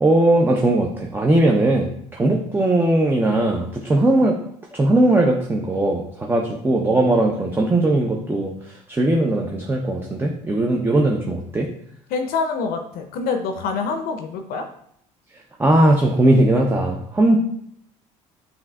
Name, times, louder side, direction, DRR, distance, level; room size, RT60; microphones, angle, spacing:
voice 1, 0.0-4.4 4.7-11.7 15.6-17.4, right 1 dB, 15° right, 0 dB, 0.5 m, -19 dB
voice 2, 12.1-14.7, left 4 dB, 65° left, 6 dB, 0.5 m, -26 dB
5.6 x 2.7 x 2.2 m, 0.69 s
supercardioid pair, 80°, 17 cm